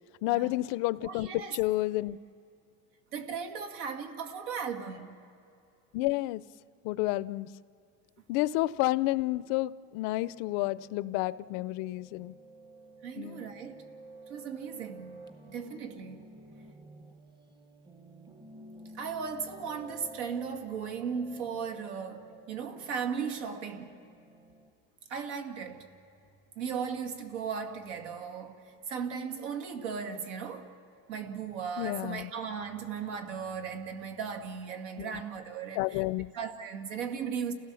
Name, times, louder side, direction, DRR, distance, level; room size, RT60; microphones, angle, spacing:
voice 1, 0.2-2.2 5.9-6.4 6.8-7.5 8.3-12.3 13.2-13.4 31.8-32.3 35.0-35.2 35.8-36.3, left 18 dB, 55° left, 0.5 m, -30 dB
voice 2, 1.0-1.6 3.1-5.2 13.0-13.8 14.3-16.3 19.0-24.0 25.1-25.9 26.6-30.8 31.1-36.0 36.3-37.5, right 6 dB, 85° right, 2.2 m, -37 dB
Piano, 10.2-24.7, right 2 dB, 15° right, 0.9 m, -52 dB
29.5 x 17.0 x 7.0 m
cardioid pair, 165°, 34 cm